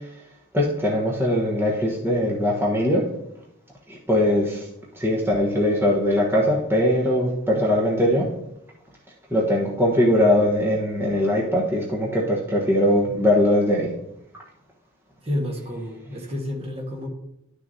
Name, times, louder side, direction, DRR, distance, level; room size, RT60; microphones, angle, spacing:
voice 1, 0.5-3.0 3.9-4.7 5.0-8.3 9.3-13.9, left 1 dB, 10° right, -3 dB, 1.1 m, -21 dB
voice 2, 15.2-17.1, left 1 dB, 25° right, 0 dB, 1.4 m, -30 dB
11.5 x 6.2 x 2.8 m, 0.81 s
head